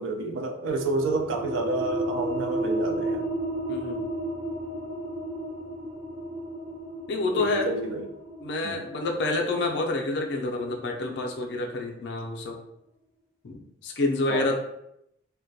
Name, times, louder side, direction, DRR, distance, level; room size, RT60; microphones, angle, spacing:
voice 1, 0.0-3.2 7.3-8.1 8.6-8.8 14.3-14.5, right 3 dB, 80° right, 5 dB, 0.3 m, -29 dB
sound 1, 0.7-11.9, right 1 dB, 30° right, 0.7 m, -33 dB
voice 2, 3.7-4.0 7.1-7.7 8.4-12.6 13.4-14.6, left 2 dB, 60° left, 2 dB, 0.4 m, -28 dB
2.2 x 2.1 x 2.6 m, 0.80 s
head